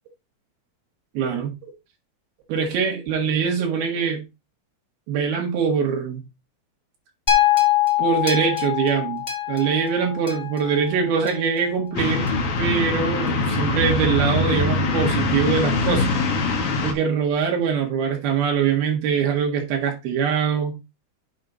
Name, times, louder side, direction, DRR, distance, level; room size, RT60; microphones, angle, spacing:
voice 1, 1.2-1.5 2.5-4.2 5.1-6.2 8.0-9.2 9.5-12.3 12.6-16.1 16.8-20.7, right 6 dB, 80° right, 2 dB, 3.5 m, -23 dB
sound 1, 7.3-11.6 12.3-12.4, left 12 dB, 20° left, 1.3 m, -23 dB
sound 2, 12.0-16.9, left 3 dB, 55° left, 1.8 m, -22 dB
7.8 x 5.2 x 4.0 m, 0.25 s
omnidirectional pair, 4.3 m